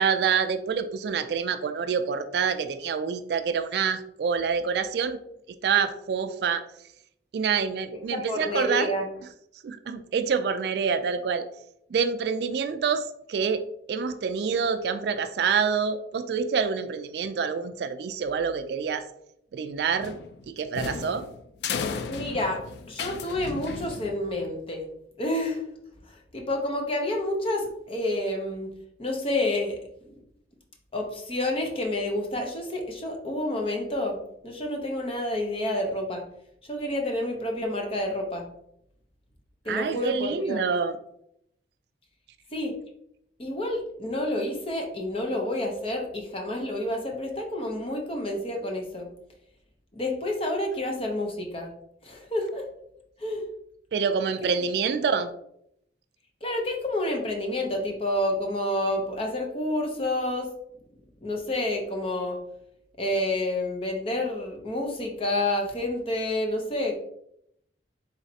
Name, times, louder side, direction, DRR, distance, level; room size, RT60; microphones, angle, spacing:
voice 1, 0.0-5.2 5.6-6.6 7.3-8.9 9.6-11.5 11.9-13.6 13.9-19.1 19.5-20.1 20.5-21.2 39.7-41.0 53.9-55.3, right 6 dB, 65° right, 10 dB, 0.3 m, -27 dB
voice 2, 8.1-9.1 22.1-24.9 25.2-25.7 26.0-28.7 29.0-29.8 30.9-34.2 34.4-36.2 36.6-38.5 39.6-40.7 42.5-42.7 43.4-49.1 49.9-51.7 52.0-52.7 53.2-53.4 56.4-60.5 61.2-62.4 63.0-66.9, left 1 dB, 30° left, 2 dB, 0.7 m, -29 dB
sound 1, 20.0-24.5, left 5 dB, 65° left, 0.3 m, -34 dB
4.1 x 3.2 x 2.7 m, 0.74 s
head